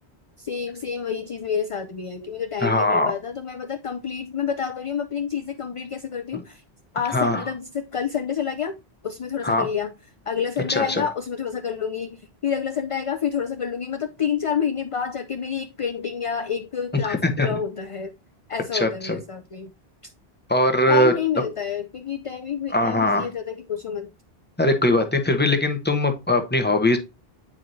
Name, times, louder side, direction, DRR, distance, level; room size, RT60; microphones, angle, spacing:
voice 1, 0.4-6.6 6.9-8.7 9.0-9.9 10.3-18.1 18.5-19.7 20.9-24.1, left 7 dB, 40° left, 0.5 m, -28 dB
voice 2, 2.6-3.1 6.3-6.4 7.1-7.5 9.4-9.7 10.7-11.0 17.0-17.6 18.7-19.2 20.5-21.1 22.7-23.3 24.6-27.0, left 1 dB, 10° left, 0.9 m, -21 dB
8.9 x 4.7 x 2.7 m
omnidirectional pair, 1.1 m